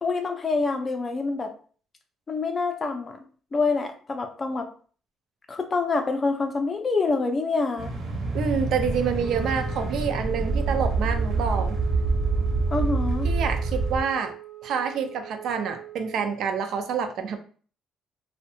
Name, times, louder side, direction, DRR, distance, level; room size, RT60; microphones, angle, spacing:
voice 1, 0.0-1.5 2.3-3.2 3.5-4.7 5.5-7.9 12.7-13.3, left 3 dB, 30° left, 5 dB, 0.4 m, -26 dB
sound 1, 7.8-14.0, right 3 dB, 55° right, 0.8 m, -26 dB
voice 2, 8.3-11.8 13.2-14.3 14.6-17.4, right 6 dB, 70° right, 7 dB, 0.4 m, -27 dB
Wind instrument woodwind instrument, 9.1-16.3, right 11 dB, 20° right, 0.6 m, -42 dB
2.6 x 2.1 x 2.7 m, 0.42 s
cardioid pair, 125°, 0 cm